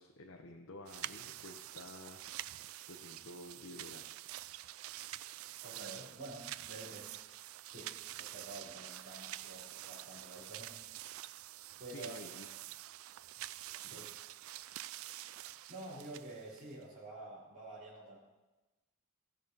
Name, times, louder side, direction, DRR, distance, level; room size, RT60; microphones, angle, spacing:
voice 1, 0.0-4.3 11.9-12.5 13.8-14.1, left 2 dB, 70° left, 2 dB, 0.8 m, -52 dB
sound 1, 0.9-16.8, right 14 dB, 90° right, 0.3 m, -47 dB
voice 2, 5.6-7.2 7.7-11.4 11.8-12.1 13.9-14.1 15.4-18.2, right 2 dB, 35° right, -10 dB, 3.7 m, -49 dB
16.0 x 6.6 x 5.3 m, 1.1 s
head